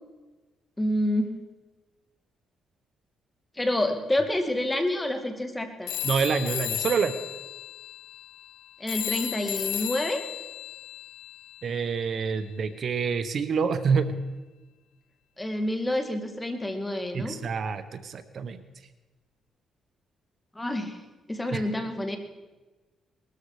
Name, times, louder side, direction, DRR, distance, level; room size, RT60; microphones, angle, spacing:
voice 1, 0.8-1.3 3.6-5.9 8.8-10.2 15.4-17.4 20.6-21.0 21.3-22.2, left 1 dB, 15° left, 5 dB, 2.3 m, -28 dB
sound 1, 5.9-12.0, left 12 dB, 85° left, 0.7 m, -35 dB
voice 2, 6.0-7.1 11.6-14.1 17.1-18.6 21.5-21.6, right 5 dB, 60° right, 12 dB, 1.0 m, -27 dB
20.5 x 13.0 x 4.9 m, 1.2 s
cardioid pair, 80°, 0 cm